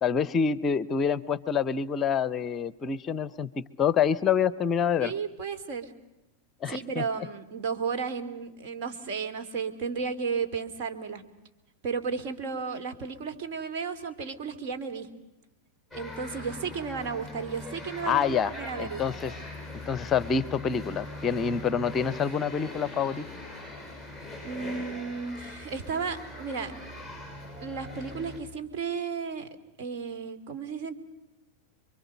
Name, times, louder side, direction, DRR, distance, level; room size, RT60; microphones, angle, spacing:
voice 1, 0.0-5.1 6.6-7.0 18.1-19.4 19.9-23.3, left 7 dB, 25° left, 19 dB, 0.8 m, -27 dB
voice 2, 5.0-5.9 6.7-11.2 11.8-15.1 15.9-19.1 24.4-26.7 27.6-29.5 29.8-30.9, right 5 dB, 45° right, 7 dB, 2.5 m, -33 dB
sound 1, 15.9-28.4, left 2 dB, 15° right, 7.6 m, -41 dB
28.0 x 23.5 x 6.7 m, 0.97 s
figure-of-eight pair, 90°, 0 cm